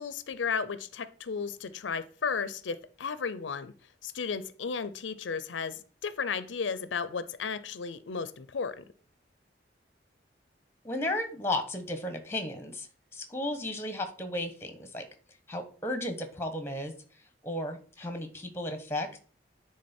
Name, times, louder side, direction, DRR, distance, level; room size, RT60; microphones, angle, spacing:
voice 1, 0.0-3.7 4.0-8.8, left 5 dB, 90° left, 14 dB, 0.5 m, -34 dB
voice 2, 10.8-12.9 13.1-15.1 15.5-16.9 17.4-19.2, left 1 dB, 15° left, 7 dB, 1.1 m, -34 dB
9.6 x 3.6 x 4.3 m, 0.42 s
head